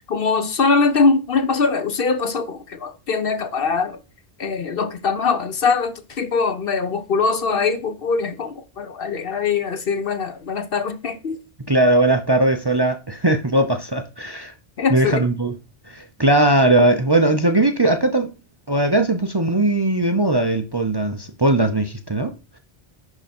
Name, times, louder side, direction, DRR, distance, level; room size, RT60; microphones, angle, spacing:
voice 1, 0.1-4.0 4.4-11.4 14.8-15.2, left 4 dB, 55° left, 1.0 m, -22 dB
voice 2, 11.7-14.5 14.9-15.5 15.9-18.3 18.7-22.3, right 1 dB, 25° right, 0.7 m, -19 dB
11.0 x 3.8 x 4.3 m
omnidirectional pair, 1.2 m